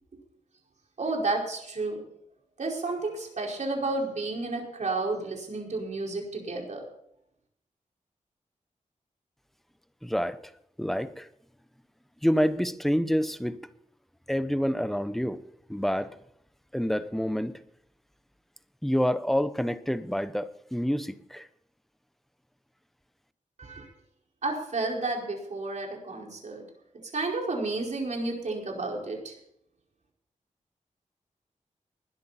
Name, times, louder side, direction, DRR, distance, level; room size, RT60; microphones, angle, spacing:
voice 1, 1.0-2.0 2.6-6.8 23.6-23.9 24.4-26.6 27.1-29.4, right 3 dB, 60° right, 0 dB, 5.0 m, -31 dB
voice 2, 10.0-10.4 10.8-11.3 12.2-13.6 14.3-15.4 15.7-16.1 16.7-17.5 18.8-21.5, equal, ahead, 12 dB, 0.9 m, -27 dB
20.5 x 10.5 x 4.3 m, 0.71 s
wide cardioid pair, 115°, 14 cm